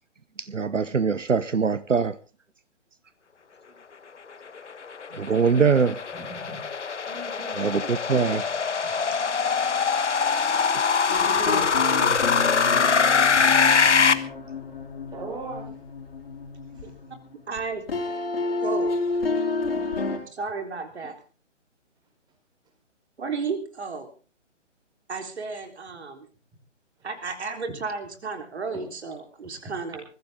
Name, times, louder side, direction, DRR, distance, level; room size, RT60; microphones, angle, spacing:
voice 1, 0.4-2.2 5.1-6.0 7.5-8.4, right 5 dB, 85° right, 1.0 m, -23 dB
sound 1, 4.6-14.1, left 5 dB, 70° left, 1.4 m, -23 dB
voice 2, 6.1-6.6 7.0-7.6 11.2-11.7 15.1-15.7, right 3 dB, 10° right, 5.2 m, -38 dB
sound 2, 11.1-17.6 17.9-20.2, left 3 dB, 50° left, 4.5 m, -30 dB
voice 3, 17.5-17.8 18.6-18.9 20.3-21.2 23.2-24.1 25.1-26.3 27.0-30.0, right 4 dB, 60° right, 3.8 m, -33 dB
21.5 x 15.0 x 3.6 m
figure-of-eight pair, 140°, 37 cm